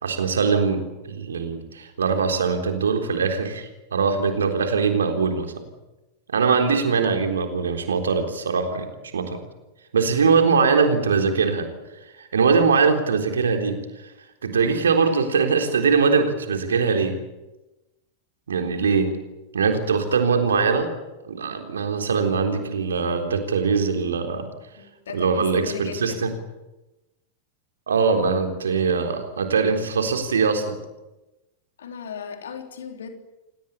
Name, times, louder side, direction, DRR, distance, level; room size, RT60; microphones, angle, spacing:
voice 1, 0.0-5.5 6.3-8.9 9.1-9.4 9.9-11.7 12.2-13.8 14.4-17.2 18.5-19.1 19.5-20.9 21.3-24.5 25.1-26.3 27.9-30.8, right 5 dB, 70° right, 5 dB, 3.8 m, -22 dB
voice 2, 14.5-14.8 24.8-26.3 31.8-33.1, left 6 dB, 65° left, 5 dB, 4.0 m, -37 dB
28.0 x 19.0 x 8.7 m, 1.0 s
figure-of-eight pair, 90°, 0 cm